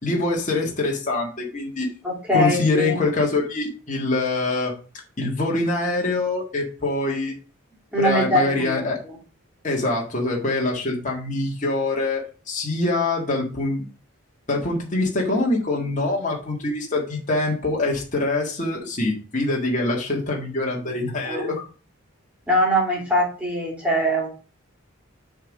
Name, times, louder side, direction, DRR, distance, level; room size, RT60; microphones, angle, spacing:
voice 1, 0.0-1.9 2.3-4.7 5.2-7.3 8.0-9.0 9.6-13.9 14.5-21.6, left 2 dB, 35° left, -1 dB, 1.6 m, -24 dB
voice 2, 2.0-3.0 7.9-9.2 20.8-20.9 21.2-21.5 22.5-24.3, equal, 5° right, -3 dB, 2.5 m, -22 dB
7.2 x 3.7 x 5.0 m, 0.36 s
head